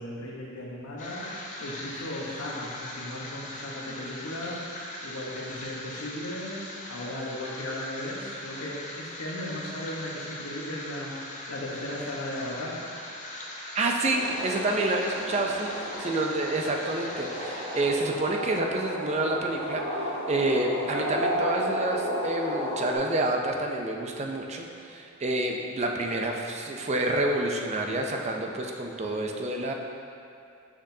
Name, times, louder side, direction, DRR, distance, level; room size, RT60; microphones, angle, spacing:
voice 1, 0.0-1.3 1.6-12.8, left 1 dB, 85° left, -3 dB, 1.0 m, -36 dB
sound 1, 1.0-17.8, left 1 dB, 35° left, 0.6 m, -40 dB
voice 2, 13.7-29.7, right 2 dB, 30° right, 2 dB, 0.4 m, -28 dB
sound 2, 14.1-23.0, equal, 60° right, 1.3 m, -33 dB
6.3 x 6.0 x 2.7 m, 2.5 s
head